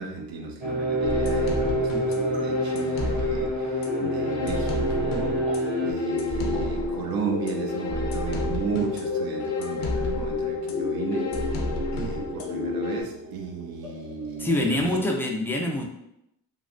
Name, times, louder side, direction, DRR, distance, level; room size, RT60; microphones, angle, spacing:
voice 1, 0.0-15.0, right 5 dB, 60° right, 3 dB, 0.7 m, -34 dB
sound 1, 0.6-5.9, right 2 dB, 20° right, 1.0 m, -29 dB
sound 2, 1.0-13.0, left 3 dB, 80° left, 0.7 m, -28 dB
sound 3, 1.2-15.0, right 2 dB, 85° right, 1.3 m, -44 dB
voice 2, 14.4-15.9, left 1 dB, 5° left, 1 dB, 0.3 m, -25 dB
3.1 x 2.3 x 2.5 m, 0.80 s
cardioid pair, 100°, 41 cm